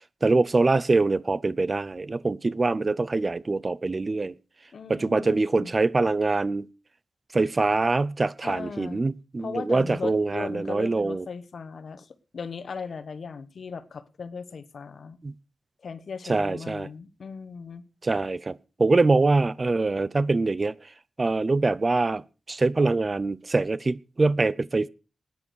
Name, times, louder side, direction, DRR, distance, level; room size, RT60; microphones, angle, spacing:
voice 1, 0.2-4.3 4.9-6.7 7.3-11.3 15.2-15.3 16.3-16.9 18.0-20.7 21.2-22.2 22.5-24.9, right 3 dB, 40° right, 0.6 m, -24 dB
voice 2, 4.7-5.7 8.4-9.0 9.4-12.1 12.3-15.2 15.8-17.8, left 5 dB, 80° left, 1.2 m, -37 dB
13.5 x 9.7 x 6.3 m
cardioid pair, 65°, 0 cm